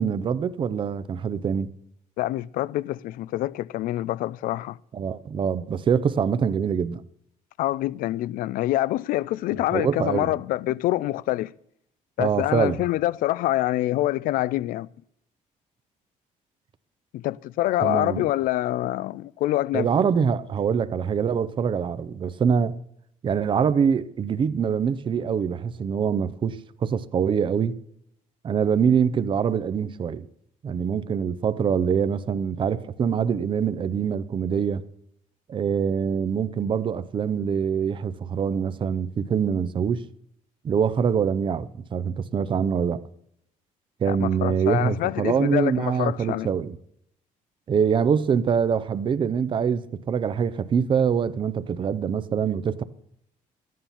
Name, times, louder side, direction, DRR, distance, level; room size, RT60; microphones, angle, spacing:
voice 1, 0.0-1.7 4.9-7.0 9.7-10.3 12.2-12.8 17.8-18.3 19.7-22.7 23.2-27.8 28.4-30.3 30.6-34.8 35.5-40.0 40.6-43.0 44.0-46.7 47.7-52.8, right 7 dB, 35° right, 0.5 m, -24 dB
voice 2, 2.2-4.8 7.6-11.5 12.2-14.9 17.1-19.9 44.1-46.5, left 15 dB, 80° left, 0.4 m, -26 dB
12.5 x 9.3 x 5.7 m
cardioid pair, 130°, 14 cm